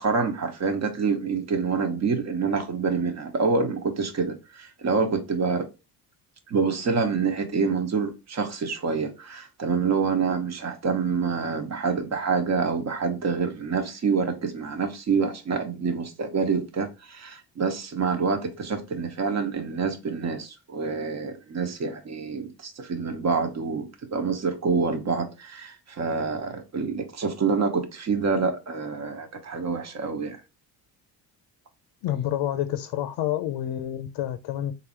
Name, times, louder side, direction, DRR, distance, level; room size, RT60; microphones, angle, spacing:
voice 1, 0.0-5.7 6.5-30.4, right 5 dB, 40° right, 1.1 m, -27 dB
voice 2, 32.0-34.7, left 12 dB, 80° left, 0.6 m, -28 dB
3.7 x 2.8 x 4.3 m
cardioid pair, 115°, 40 cm